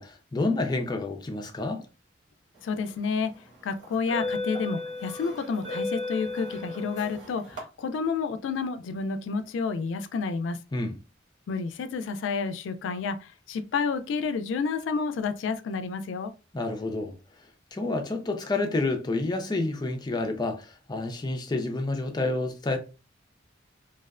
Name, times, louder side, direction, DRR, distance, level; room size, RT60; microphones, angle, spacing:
voice 1, 0.0-1.8 10.7-10.9 16.5-17.1 17.7-22.8, left 2 dB, 25° left, 0.4 m, -29 dB
voice 2, 2.6-3.3 3.6-10.6 11.5-16.3, left 5 dB, 90° left, 0.3 m, -30 dB
sound 1, 2.8-3.1 3.8-7.6, left 2 dB, 85° right, 1.1 m, -34 dB
2.6 x 2.1 x 2.4 m
head